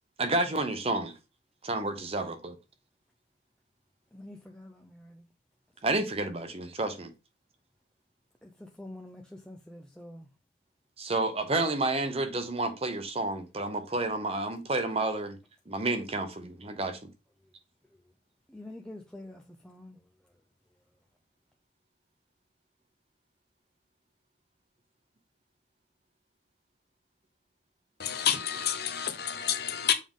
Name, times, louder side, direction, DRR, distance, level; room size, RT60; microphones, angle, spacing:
voice 1, 0.2-1.1 1.6-2.6 5.8-7.1 11.0-15.4 15.7-17.1, right 2 dB, 30° right, 0.8 m, -30 dB
voice 2, 4.1-5.3 8.4-10.3 18.5-20.0, left 1 dB, 5° left, 0.5 m, -46 dB
voice 3, 28.0-29.9, left 9 dB, 50° left, 0.8 m, -29 dB
7.2 x 3.8 x 3.6 m
head